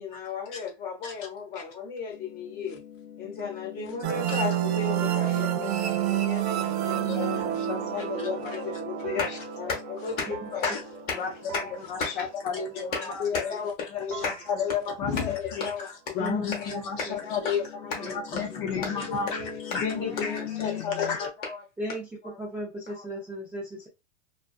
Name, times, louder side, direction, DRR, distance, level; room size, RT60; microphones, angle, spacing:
voice 1, 0.0-2.8 3.2-7.3 7.8-7.9 8.2-8.6 9.2-10.7 11.1-14.5 15.1-16.7 17.0-17.5 17.9-18.1 18.8-20.4 20.7-21.1 21.4-21.6 21.9-22.0 22.2-22.3 22.9-23.1, left 5 dB, 25° left, 1.0 m, -35 dB
sound 1, 2.1-6.0 6.3-12.5 13.0-13.1 13.6-13.7 14.8-14.9 15.7-15.8 16.6-21.2, left 10 dB, 85° left, 0.6 m, -43 dB
sound 2, 4.0-11.5, right 12 dB, 55° right, 0.5 m, -29 dB
sound 3, 6.5-13.8 14.1-16.2, right 8 dB, 80° right, 0.8 m, -46 dB
voice 2, 7.1-7.4 7.7-8.4 9.0-9.2 10.6-10.8 11.2-11.3 11.9-12.7 13.1-13.5 14.2-14.3 14.6-15.7 16.2-17.6 18.0-19.4 19.7-21.3, left 6 dB, 45° left, 0.7 m, -31 dB
voice 3, 16.2-16.8 18.0-18.2 18.5-18.8 21.8-23.9, right 1 dB, 5° right, 0.4 m, -37 dB
2.5 x 2.3 x 2.4 m
supercardioid pair, 150°, 38 cm